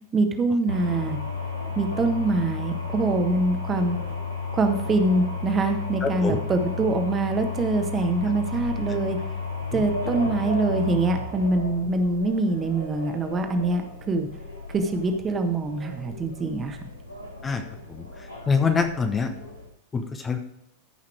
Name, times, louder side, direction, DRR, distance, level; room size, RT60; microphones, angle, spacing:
voice 1, 0.1-1.2 1.7-4.0 4.5-9.2 9.7-14.3 14.7-16.8, right 2 dB, 20° right, 6 dB, 1.4 m, -24 dB
sound 1, 0.7-19.7, left 4 dB, 90° left, 2.4 m, -33 dB
voice 2, 6.0-6.4 9.7-9.8 17.4-17.6 17.9-18.0 18.5-19.3 19.9-20.4, left 5 dB, 20° left, 6 dB, 1.0 m, -24 dB
14.0 x 5.7 x 4.7 m, 0.75 s
figure-of-eight pair, 90°, 0 cm